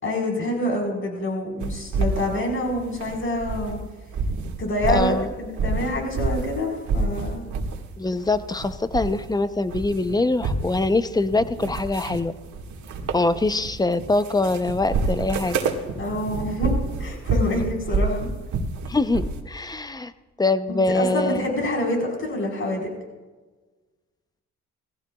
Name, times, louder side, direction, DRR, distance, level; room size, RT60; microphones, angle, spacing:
voice 1, 0.0-3.8 4.6-7.5 16.0-16.7 17.0-18.3 20.7-22.9, left 1 dB, 45° left, 0 dB, 4.6 m, -26 dB
sound 1, 1.6-3.8 4.1-6.6 6.9-7.8 8.2-9.3 9.6-19.4, right 3 dB, 75° right, 1.9 m, -28 dB
voice 2, 4.9-5.3 8.0-12.3 13.1-15.6 18.9-20.1 20.4-21.5, left 2 dB, 15° left, 12 dB, 0.7 m, -23 dB
19.0 x 15.5 x 2.4 m, 1.3 s
cardioid pair, 90°, 30 cm